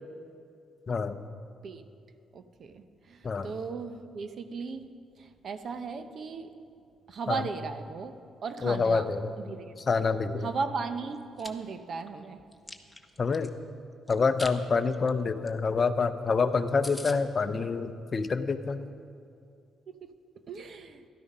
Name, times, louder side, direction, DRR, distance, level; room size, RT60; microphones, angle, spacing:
voice 1, 0.9-1.2 3.2-3.5 7.3-7.4 8.6-9.3 9.9-10.5 13.2-13.5 14.1-18.8, left 4 dB, 40° left, 10 dB, 0.6 m, -27 dB
voice 2, 2.3-4.9 5.2-6.5 7.1-9.1 9.4-9.7 10.4-12.4 20.0-20.1 20.5-21.0, right 5 dB, 55° right, 9 dB, 0.9 m, -36 dB
Chewing mastication, 11.1-11.5 12.0-13.5 14.1-14.6 14.9-15.1 15.5-15.6 15.8-15.9 16.3-16.4 16.5-16.6 16.8-17.2, left 1 dB, 10° left, 1.0 m, -42 dB
12.5 x 12.5 x 5.4 m, 2.4 s
cardioid pair, 90°, 0 cm